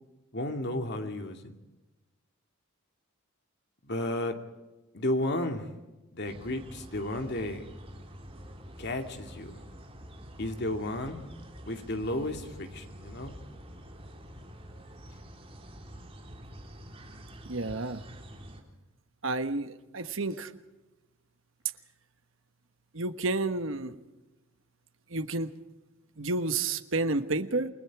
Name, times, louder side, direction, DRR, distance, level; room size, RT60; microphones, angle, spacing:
voice 1, 0.3-1.5 3.8-4.4 4.9-5.7 6.1-7.6 8.8-9.6 10.4-11.2 11.7-13.3, left 1 dB, 55° left, 5 dB, 2.5 m, -33 dB
sound 1, 6.2-18.6, equal, 30° right, 3.4 m, -47 dB
voice 2, 17.5-18.0 19.2-20.5 22.9-23.9 25.1-25.5 26.2-27.7, right 3 dB, 65° right, 9 dB, 1.3 m, -30 dB
29.0 x 20.0 x 4.8 m, 1.1 s
head